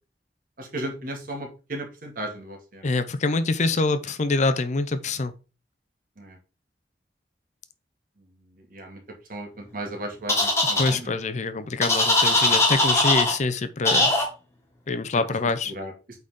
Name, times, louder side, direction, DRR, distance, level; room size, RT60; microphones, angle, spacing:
voice 1, 0.6-2.9 6.2-6.4 8.7-9.0 9.3-11.1 12.4-12.7 15.7-15.9, right 1 dB, 55° right, 2.0 m, -35 dB
voice 2, 2.8-5.3 10.8-14.1 14.9-15.7, left 3 dB, 45° left, 0.6 m, -25 dB
sound 1, 10.3-10.9 11.8-13.3 13.8-14.2, left 2 dB, 15° left, 1.8 m, -20 dB
8.5 x 4.1 x 3.7 m
head